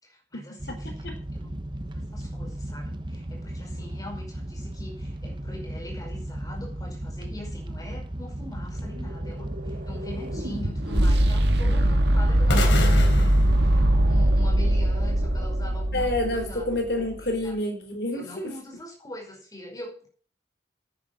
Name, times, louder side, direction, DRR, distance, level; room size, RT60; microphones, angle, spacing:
voice 1, 0.0-1.5 1.9-16.7 17.2-17.5 18.1-20.1, left 1 dB, 20° left, 1 dB, 5.1 m, -43 dB
sound 1, 0.6-14.8 15.1-15.5 15.9-16.0 16.2-16.4, right 1 dB, 25° right, 0.8 m, -34 dB
voice 2, 0.7-1.1 15.9-18.5, left 1 dB, 55° left, 4 dB, 3.5 m, -28 dB
sound 2, 8.7-16.8, right 1 dB, 60° right, 1.7 m, -22 dB
sound 3, 12.5-14.6, left 1 dB, 75° left, 3.7 m, -28 dB
10.5 x 9.7 x 6.0 m, 0.43 s
head